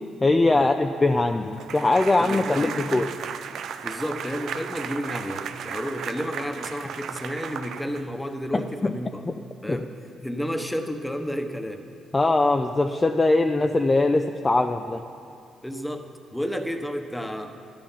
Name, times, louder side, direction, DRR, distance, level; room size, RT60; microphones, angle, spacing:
voice 1, 0.2-3.1 8.5-8.9 9.3-9.4 9.7-9.8 12.1-15.0, left 2 dB, 20° left, 5 dB, 0.6 m, -21 dB
sound 1, 1.6-8.3, right 7 dB, 70° right, 0.6 m, -35 dB
voice 2, 2.2-2.8 3.8-9.2 9.6-9.9 10.2-11.8 15.6-17.5, equal, 5° left, 6 dB, 1.1 m, -31 dB
13.0 x 11.5 x 5.7 m, 2.4 s
cardioid pair, 90°, 0 cm